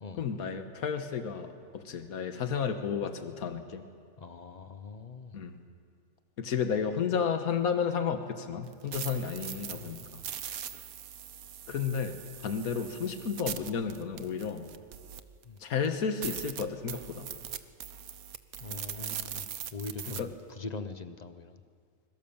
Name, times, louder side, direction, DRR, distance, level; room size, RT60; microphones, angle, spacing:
voice 1, 0.2-3.9 5.3-5.6 6.4-10.2 11.7-14.7 15.6-17.3 20.2-20.3, left 6 dB, 80° left, 8 dB, 1.7 m, -32 dB
voice 2, 4.2-5.4 9.7-10.2 15.4-15.6 18.6-21.6, left 4 dB, 35° left, 10 dB, 0.9 m, -42 dB
sound 1, 8.7-15.4 15.8-15.9 16.2-20.2, right 9 dB, 80° right, 1.4 m, -41 dB
24.5 x 22.0 x 7.2 m, 2.2 s
omnidirectional pair, 1.5 m